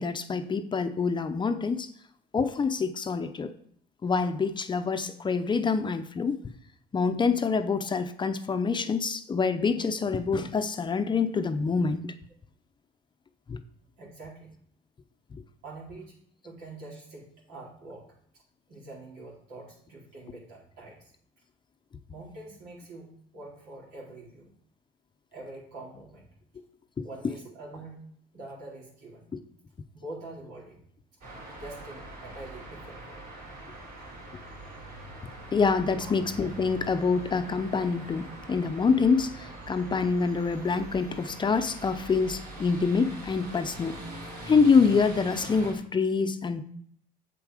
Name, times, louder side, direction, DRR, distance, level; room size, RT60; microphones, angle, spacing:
voice 1, 0.0-1.9 2.3-3.5 4.0-6.4 6.9-12.1 13.5-13.6 27.0-27.1 35.5-44.0 44.4-46.6, left 5 dB, 25° left, 8 dB, 0.6 m, -26 dB
voice 2, 14.0-14.6 15.6-16.2 16.4-18.1 18.3-18.4 18.7-21.1 22.1-24.5 25.3-26.2 27.0-29.3 29.9-30.8 31.5-33.2 36.0-36.1, right 2 dB, 85° right, -4 dB, 4.0 m, -45 dB
sound 1, 31.2-45.7, right 2 dB, 70° right, 3.7 m, -43 dB
7.7 x 7.2 x 4.9 m, 0.63 s
cardioid pair, 110°, 17 cm